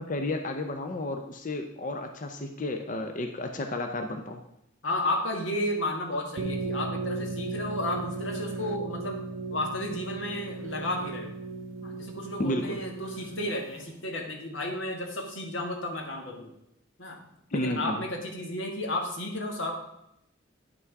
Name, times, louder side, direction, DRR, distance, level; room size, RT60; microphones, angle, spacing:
voice 1, 0.0-4.4 12.4-12.8 17.5-18.0, left 1 dB, 40° left, 5 dB, 0.6 m, -32 dB
voice 2, 4.8-9.2 9.5-11.3 11.8-16.5 17.0-17.2 17.5-19.7, left 1 dB, 70° left, 2 dB, 1.7 m, -33 dB
sound 1, 6.4-13.8, right 3 dB, 75° right, 0.6 m, -36 dB
9.6 x 6.1 x 4.6 m, 0.81 s
head